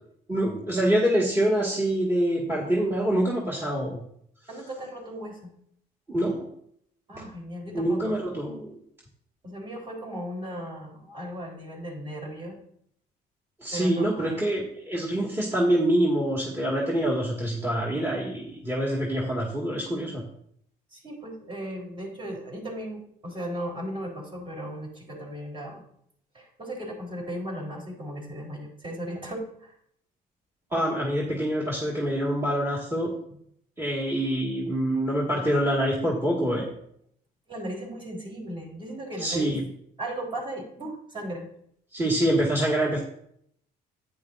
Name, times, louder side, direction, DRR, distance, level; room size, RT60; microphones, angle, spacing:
voice 1, 0.3-4.0 6.1-6.3 7.7-8.7 13.6-14.6 14.9-20.2 30.7-33.1 33.8-36.7 39.2-39.6 41.9-43.0, right 1 dB, 15° right, -4 dB, 1.9 m, -25 dB
voice 2, 4.5-5.5 7.1-8.2 9.4-12.6 13.7-14.4 20.9-25.8 26.3-29.7 33.3-33.4 37.5-39.6 40.0-41.5, right 1 dB, 30° right, -1 dB, 3.7 m, -36 dB
10.5 x 9.3 x 2.6 m, 0.69 s
cardioid pair, 110°, 17 cm